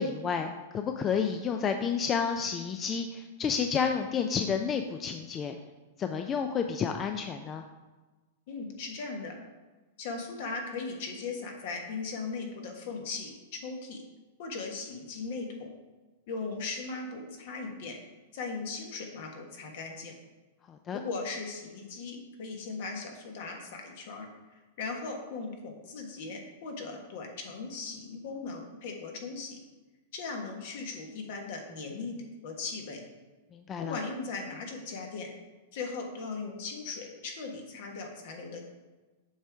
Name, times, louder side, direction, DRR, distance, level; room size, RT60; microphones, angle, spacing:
voice 1, 0.0-5.6 6.0-7.6 20.7-21.0 33.5-34.0, left 6 dB, 25° left, 6 dB, 0.4 m, -30 dB
voice 2, 8.5-9.4 10.0-14.0 14.4-15.7 16.3-18.0 18.3-20.1 20.9-24.3 24.8-29.6 30.1-32.2 32.4-33.0 33.8-35.3 35.7-38.6, left 4 dB, 60° left, 2 dB, 1.4 m, -38 dB
7.2 x 4.9 x 3.5 m, 1.2 s
hypercardioid pair, 130°, 0 cm